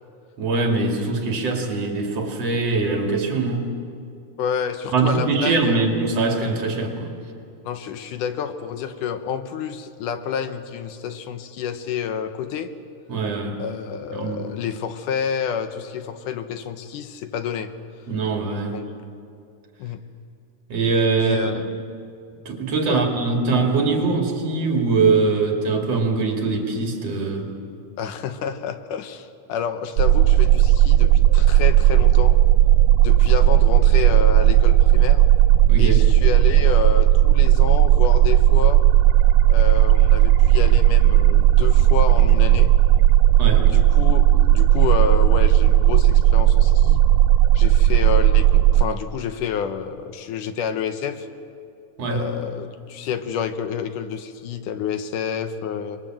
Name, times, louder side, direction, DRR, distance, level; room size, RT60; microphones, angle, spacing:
voice 1, 0.4-3.8 4.9-7.1 13.1-13.6 14.1-14.4 18.1-18.8 20.7-21.6 22.4-27.5 35.7-36.0 43.4-43.7 52.0-52.2, right 4 dB, 55° right, 2 dB, 3.3 m, -22 dB
voice 2, 4.4-5.9 7.6-12.7 13.6-17.7 18.7-18.9 19.8-20.0 21.1-21.7 22.9-23.0 28.0-32.4 33.0-35.3 35.8-38.8 39.5-42.7 43.7-47.0 47.5-51.3 52.1-56.0, left 7 dB, 80° left, 9 dB, 2.6 m, -29 dB
sound 1, 30.0-48.9, right 13 dB, 90° right, 2.3 m, -15 dB
26.0 x 21.5 x 7.6 m, 2.5 s
omnidirectional pair, 3.6 m